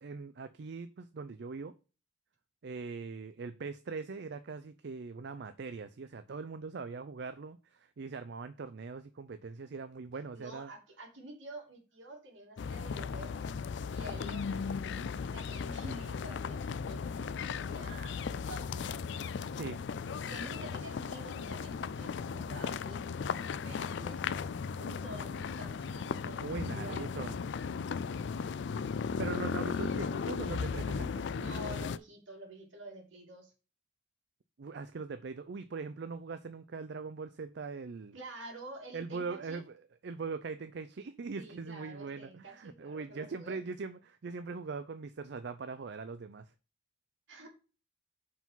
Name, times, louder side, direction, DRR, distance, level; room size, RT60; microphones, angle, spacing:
voice 1, 0.0-1.7 2.6-10.7 19.5-19.9 26.4-27.4 29.2-31.3 34.6-38.2 38.9-46.5, right 4 dB, 60° right, 0.5 m, -41 dB
voice 2, 10.3-13.5 13.9-18.9 20.2-26.4 26.7-27.1 29.7-30.1 31.3-33.5 38.1-39.6 41.4-43.6 47.3-47.5, right 1 dB, 75° right, 2.5 m, -49 dB
sound 1, 12.6-32.0, left 5 dB, 65° left, 0.4 m, -36 dB
5.8 x 4.9 x 5.5 m
head